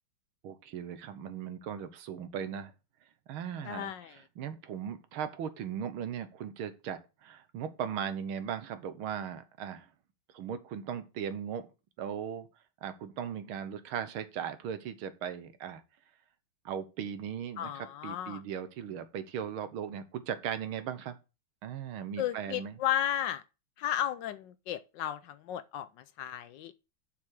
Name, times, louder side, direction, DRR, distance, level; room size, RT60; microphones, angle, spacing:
voice 1, 0.4-2.7 3.3-9.9 10.3-11.7 12.0-12.5 12.8-15.8 16.7-21.2 21.6-22.8, right 8 dB, 90° right, 1.9 m, -38 dB
voice 2, 3.6-4.1 17.6-18.4 22.2-23.4 23.8-25.9 26.2-26.7, left 11 dB, 70° left, 1.1 m, -34 dB
7.1 x 6.2 x 4.8 m
omnidirectional pair, 2.3 m